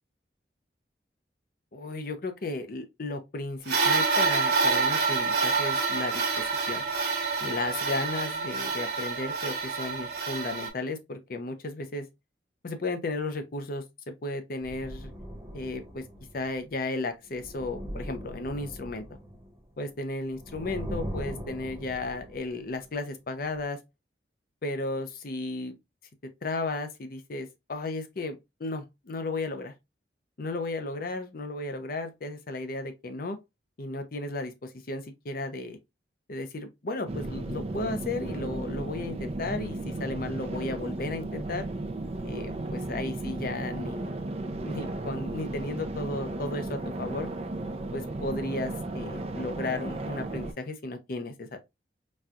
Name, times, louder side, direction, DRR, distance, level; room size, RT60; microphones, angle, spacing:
voice 1, 1.7-6.8 7.4-12.1 12.6-15.1 15.5-16.0 16.3-19.0 19.8-23.8 24.6-25.7 26.4-29.7 30.4-33.4 33.8-35.8 36.3-41.7 42.2-44.1 44.6-47.3 47.9-51.6, left 2 dB, 55° left, 0.6 m, -34 dB
sound 1, 3.7-10.7, right 4 dB, 55° right, 1.2 m, -27 dB
sound 2, 14.6-16.7 17.3-19.9 20.3-22.8 23.6-23.7, equal, 15° right, 0.8 m, -40 dB
sound 3, 37.1-50.5, right 2 dB, 35° right, 0.4 m, -35 dB
4.2 x 2.3 x 2.4 m
head